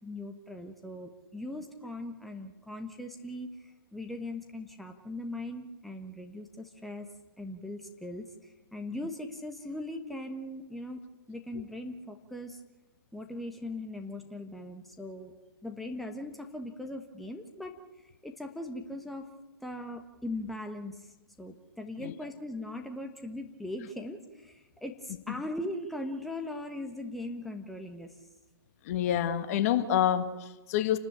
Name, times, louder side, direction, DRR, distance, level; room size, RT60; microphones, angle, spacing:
voice 1, 0.0-7.1 7.4-11.0 11.3-12.6 13.1-15.3 15.6-17.7 18.2-19.3 19.6-28.1, left 1 dB, ahead, 1.4 m, -40 dB
voice 2, 28.8-31.0, left 10 dB, 40° left, 1.6 m, -28 dB
28.5 x 13.0 x 8.9 m
figure-of-eight pair, 130°, 12 cm